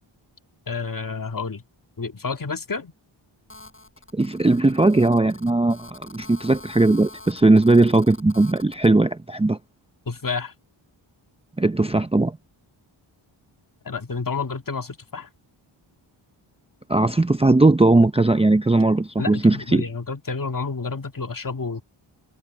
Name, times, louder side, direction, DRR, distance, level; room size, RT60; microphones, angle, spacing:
voice 1, 0.7-1.6 2.0-2.9 10.1-10.5 13.9-15.3 19.2-21.8, left 4 dB, 40° left, 2.0 m, -29 dB
Telephone, 3.5-8.9, left 2 dB, 25° left, 7.9 m, -45 dB
voice 2, 4.1-9.6 11.6-12.4 16.9-19.8, right 2 dB, 10° right, 0.7 m, -18 dB
cardioid pair, 60°, 49 cm